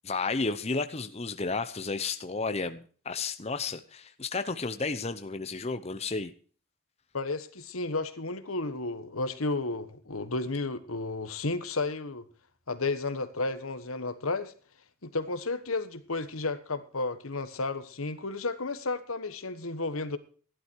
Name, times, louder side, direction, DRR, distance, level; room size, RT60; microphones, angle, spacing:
voice 1, 0.0-6.3, left 4 dB, 30° left, 0.8 m, -32 dB
voice 2, 7.1-12.2 12.7-14.5 15.0-20.2, left 3 dB, 80° left, 1.4 m, -32 dB
15.5 x 11.5 x 4.6 m
head